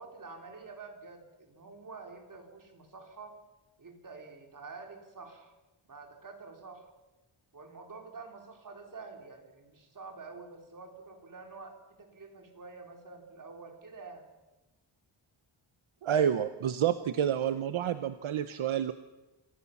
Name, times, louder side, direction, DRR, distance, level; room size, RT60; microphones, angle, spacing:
voice 1, 0.0-3.4 3.8-5.5 5.9-6.9 7.5-14.2, right 4 dB, 40° right, 3 dB, 3.7 m, -48 dB
voice 2, 16.0-18.9, right 9 dB, 70° right, 11 dB, 0.9 m, -29 dB
27.5 x 15.5 x 7.2 m, 1.1 s
wide cardioid pair, 140°, 50 cm